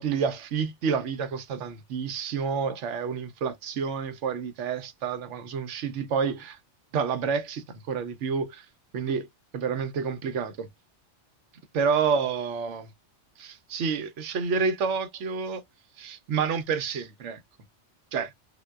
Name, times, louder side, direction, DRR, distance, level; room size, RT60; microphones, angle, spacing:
voice 1, 0.0-6.6 6.9-8.7 8.9-9.3 9.5-10.7 11.7-12.9 13.4-15.6 16.0-17.4 18.1-18.3, right 6 dB, 80° right, 1.0 m, -29 dB
3.7 x 2.1 x 2.2 m
omnidirectional pair, 1.2 m